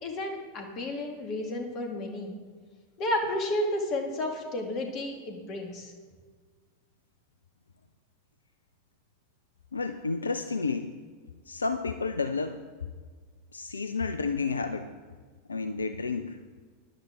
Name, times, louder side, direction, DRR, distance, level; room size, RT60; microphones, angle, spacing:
voice 1, 0.0-2.3 3.0-5.9, left 1 dB, 35° left, 3 dB, 2.1 m, -32 dB
voice 2, 9.7-10.9 11.5-12.6 13.5-14.9 15.5-16.4, left 4 dB, 75° left, 9 dB, 0.5 m, -31 dB
13.0 x 10.5 x 3.7 m, 1.5 s
figure-of-eight pair, 90°, 0 cm